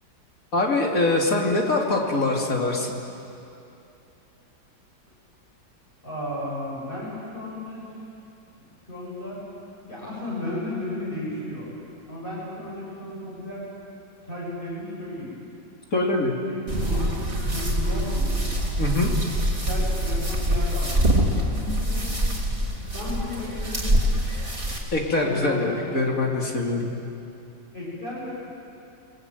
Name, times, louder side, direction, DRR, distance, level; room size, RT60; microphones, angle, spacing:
voice 1, 0.5-2.9 15.9-16.3 18.8-19.1 24.9-26.9, left 2 dB, 45° left, 0 dB, 3.1 m, -23 dB
voice 2, 6.0-7.8 8.9-9.4 9.9-11.7 12.1-13.7 14.2-15.3 16.5-18.4 19.5-22.1 22.9-24.0 25.2-25.9 27.7-28.3, left 1 dB, 25° left, -8 dB, 7.5 m, -34 dB
sound 1, 16.7-21.1, left 1 dB, 65° left, 6.7 m, -42 dB
sound 2, 16.7-24.8, equal, 25° right, 3.7 m, -24 dB
30.0 x 20.0 x 9.3 m, 2.7 s
omnidirectional pair, 2.0 m